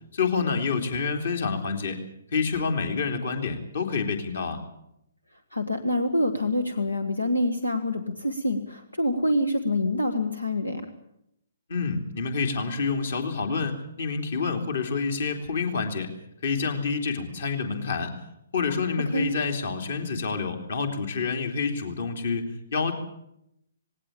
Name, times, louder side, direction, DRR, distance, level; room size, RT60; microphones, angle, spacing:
voice 1, 0.1-2.0 2.3-4.6 11.7-16.1 16.4-18.1 18.5-22.9, left 5 dB, 55° left, 5 dB, 3.2 m, -28 dB
voice 2, 5.5-10.9 19.1-19.3, left 1 dB, 85° left, 8 dB, 1.6 m, -26 dB
18.5 x 18.0 x 8.6 m, 0.80 s
figure-of-eight pair, 130°, 0 cm